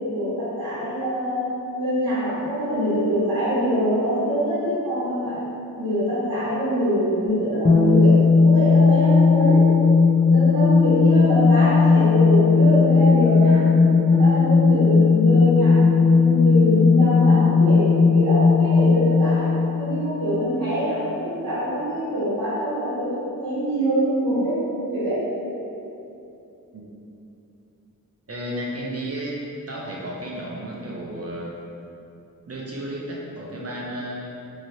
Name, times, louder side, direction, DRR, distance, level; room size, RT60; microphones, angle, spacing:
voice 1, 0.0-5.5 5.8-9.7 10.3-13.7 14.0-25.3, equal, 80° right, -11 dB, 0.9 m, -24 dB
sound 1, 7.6-20.5, left 4 dB, 25° left, 0.4 m, -16 dB
voice 2, 28.3-29.3 29.7-31.6 32.5-34.3, right 1 dB, 45° right, -4 dB, 0.5 m, -33 dB
2.9 x 2.8 x 2.7 m, 2.8 s
wide cardioid pair, 50°, 35 cm